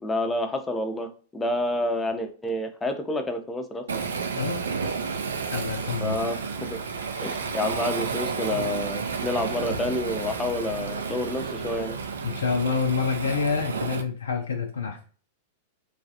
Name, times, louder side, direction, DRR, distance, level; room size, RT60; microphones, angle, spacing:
voice 1, 0.0-4.0 6.0-6.8 7.2-12.0, left 1 dB, 15° left, 6 dB, 0.5 m, -29 dB
Waves surf, 3.9-14.0, right 5 dB, 80° right, 0.3 m, -31 dB
voice 2, 4.4-4.7 5.5-6.2 12.2-15.0, left 5 dB, 80° left, 2 dB, 0.4 m, -27 dB
3.1 x 2.4 x 2.7 m, 0.40 s
hypercardioid pair, 100°, 0 cm